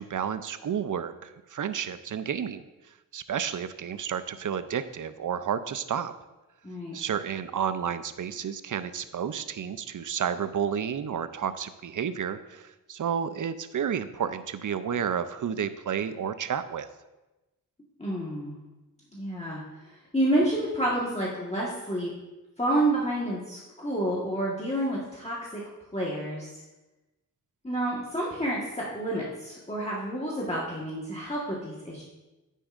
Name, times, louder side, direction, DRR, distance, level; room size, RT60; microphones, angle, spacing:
voice 1, 0.0-2.6 3.1-6.1 6.9-16.9, right 8 dB, 60° right, 12 dB, 0.5 m, -31 dB
voice 2, 6.6-6.9 18.0-18.5 19.1-19.6 20.1-22.1 22.6-25.6 25.9-26.5 27.6-32.0, right 1 dB, 20° left, -5 dB, 1.5 m, -29 dB
9.9 x 9.2 x 2.5 m, 1.1 s
wide cardioid pair, 85°, 36 cm